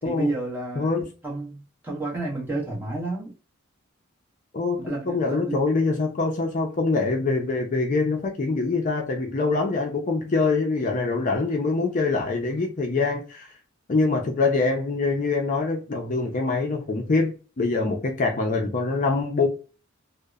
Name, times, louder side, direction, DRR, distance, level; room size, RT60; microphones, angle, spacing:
voice 1, 0.0-3.3 4.8-5.6, right 2 dB, 10° right, 0.9 m, -31 dB
voice 2, 0.8-1.1 4.5-13.5 13.9-19.5, left 3 dB, 40° left, 0.4 m, -24 dB
2.8 x 2.0 x 2.3 m
head